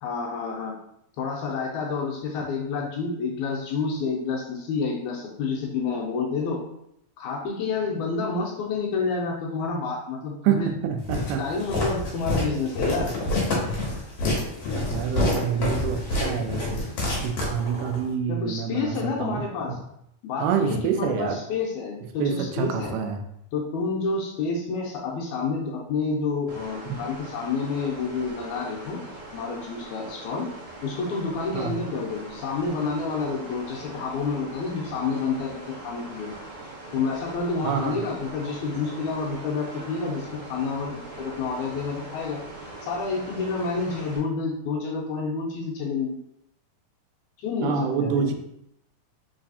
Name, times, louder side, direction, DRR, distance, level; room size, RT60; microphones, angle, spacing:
voice 1, 0.0-0.7 1.2-6.6 7.2-10.7 11.4-13.1 18.3-19.8 20.2-22.9 23.5-29.0 29.3-30.5 30.8-36.3 36.9-42.4 42.8-46.2 47.4-48.3, left 4 dB, 80° left, -1 dB, 1.9 m, -29 dB
voice 2, 10.4-11.4 14.9-16.9 17.2-19.4 20.4-21.4 22.2-23.2 26.9-27.0 31.5-31.8 37.6-38.0 47.6-48.3, right 7 dB, 85° right, 5 dB, 2.1 m, -27 dB
Walk footsteps, 11.1-18.0, left 1 dB, 60° left, 1.8 m, -27 dB
sound 1, 26.5-44.2, right 2 dB, 55° right, 1.6 m, -41 dB
4.6 x 3.2 x 2.7 m, 0.76 s
omnidirectional pair, 3.7 m